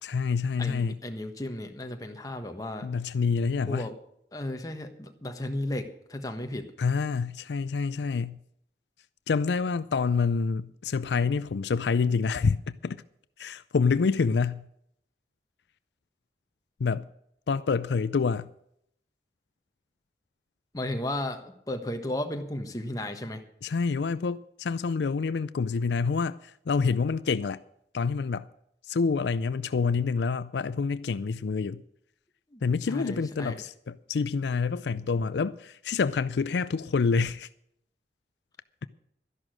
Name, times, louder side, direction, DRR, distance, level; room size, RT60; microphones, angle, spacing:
voice 1, 0.0-1.0 2.8-3.9 6.8-8.4 9.3-13.0 13.4-14.7 16.8-17.0 17.5-18.5 23.6-27.6 27.9-28.5 28.9-31.8 32.6-37.5, left 5 dB, 80° left, 0.4 m, -27 dB
voice 2, 0.6-2.9 3.7-4.0 4.3-6.7 20.7-23.4 32.5-32.6 32.9-33.6, left 1 dB, 20° left, 1.3 m, -34 dB
12.5 x 11.0 x 6.3 m
head